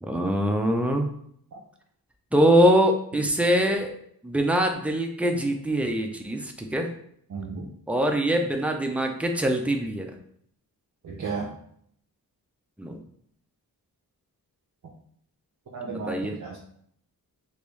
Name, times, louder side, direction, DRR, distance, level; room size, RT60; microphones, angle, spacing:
voice 1, 0.0-1.1 2.3-3.9 4.2-6.9 7.9-10.1 12.8-13.0 15.9-16.4, equal, 5° right, 3 dB, 0.4 m, -23 dB
voice 2, 7.3-7.7 11.0-11.5 15.7-16.6, right 4 dB, 50° right, 0 dB, 0.6 m, -34 dB
3.4 x 2.6 x 3.1 m, 0.68 s
wide cardioid pair, 105°, 38 cm